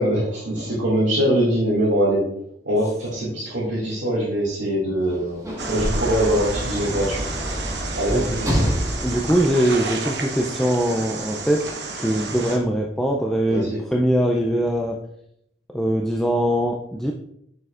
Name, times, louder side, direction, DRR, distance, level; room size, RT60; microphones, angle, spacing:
voice 1, 0.0-2.2 2.6-7.3 7.9-8.6 13.5-13.8, equal, 80° right, -8 dB, 2.2 m, -23 dB
Sliding door / Slam, 5.0-10.4 11.3-11.4, equal, 20° right, 1.5 m, -27 dB
sound 1, 5.6-12.6, right 3 dB, 65° right, 1.0 m, -31 dB
voice 2, 9.0-11.6 11.9-15.0 15.7-17.1, equal, 5° left, 0 dB, 0.4 m, -22 dB
6.8 x 6.3 x 2.5 m, 0.74 s
head